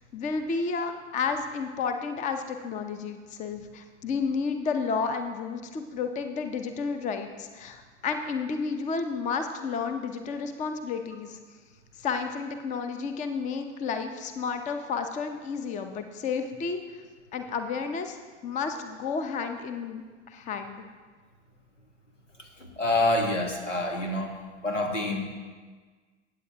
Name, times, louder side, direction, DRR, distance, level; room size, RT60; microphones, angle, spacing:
voice 1, 0.1-11.4 12.0-17.0 17.3-18.2 18.4-20.8, left 5 dB, 20° left, 7 dB, 0.7 m, -31 dB
voice 2, 22.8-24.4 24.6-25.3, left 1 dB, 85° left, 3 dB, 1.6 m, -26 dB
16.0 x 8.5 x 2.8 m, 1.5 s
figure-of-eight pair, 95°, 36 cm